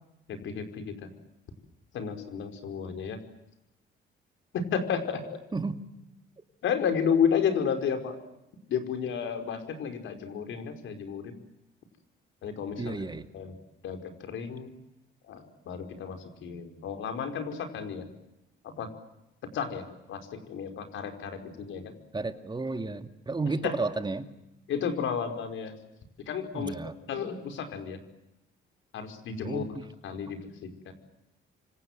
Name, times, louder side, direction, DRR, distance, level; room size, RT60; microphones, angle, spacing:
voice 1, 0.3-1.1 1.9-3.2 4.5-5.2 6.6-8.2 8.7-11.3 12.4-13.1 13.3-13.5 13.8-14.7 15.3-18.1 18.6-18.9 19.5-21.9 23.4-23.7 24.7-25.7 26.3-26.8 27.1-28.0 28.9-29.6 30.0-30.9, left 7 dB, 75° left, 6 dB, 5.3 m, -32 dB
voice 2, 12.8-13.3 22.1-24.3 26.5-26.9 29.4-29.8, right 3 dB, 20° right, 8 dB, 2.2 m, -32 dB
29.5 x 26.0 x 7.6 m, 0.90 s
cardioid pair, 90°, 20 cm